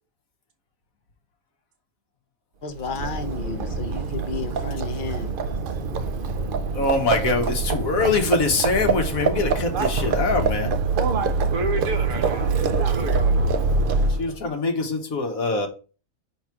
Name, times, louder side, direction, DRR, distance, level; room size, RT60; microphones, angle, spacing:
voice 1, 2.6-5.4, left 5 dB, 45° left, 0.7 m, -32 dB
Livestock farm animals working animals, 2.8-14.4, right 4 dB, 55° right, 0.6 m, -24 dB
voice 2, 6.7-10.7 14.2-15.7, left 3 dB, 85° left, 1.7 m, -23 dB
voice 3, 11.5-13.6, right 3 dB, 75° right, 1.5 m, -31 dB
5.9 x 4.1 x 4.7 m
omnidirectional pair, 1.4 m